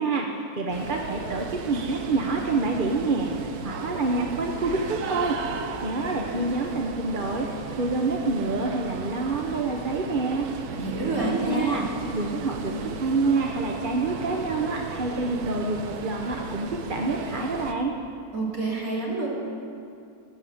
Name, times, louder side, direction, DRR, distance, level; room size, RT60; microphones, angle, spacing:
voice 1, 0.0-3.3 3.6-5.4 5.8-10.5 11.2-11.8 12.1-17.9, right 3 dB, 40° right, 1 dB, 1.0 m, -27 dB
sound 1, 0.7-17.7, right 6 dB, 85° right, 1.3 m, -36 dB
voice 2, 10.7-11.8 18.3-19.3, right 3 dB, 65° right, -5 dB, 3.5 m, -28 dB
20.5 x 7.8 x 7.9 m, 2.5 s
omnidirectional pair, 1.6 m